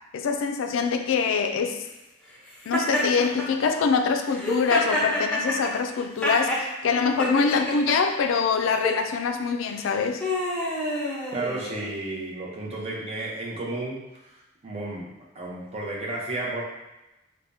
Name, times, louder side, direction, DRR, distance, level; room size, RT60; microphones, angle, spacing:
voice 1, 0.1-1.9 2.7-10.2, left 5 dB, 75° left, 6 dB, 0.3 m, -24 dB
Laughter, 2.7-3.5 4.3-6.6 7.2-8.0 8.7-9.0 9.7-11.9, left 1 dB, 5° left, 0.7 m, -28 dB
voice 2, 11.3-16.6, right 2 dB, 30° right, -4 dB, 0.7 m, -33 dB
4.9 x 2.2 x 2.6 m, 0.98 s
head